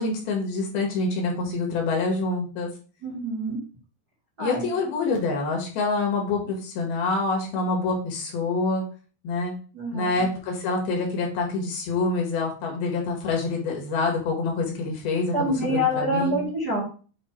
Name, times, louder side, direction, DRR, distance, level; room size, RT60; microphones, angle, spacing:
voice 1, 0.0-2.7 4.4-8.8 9.2-9.5 9.9-16.4, left 3 dB, 75° left, 0 dB, 3.6 m, -26 dB
voice 2, 3.0-3.6 4.4-4.6 9.7-10.2 15.3-16.8, equal, 40° right, -5 dB, 1.4 m, -26 dB
8.0 x 2.9 x 4.5 m, 0.37 s
omnidirectional pair, 4.4 m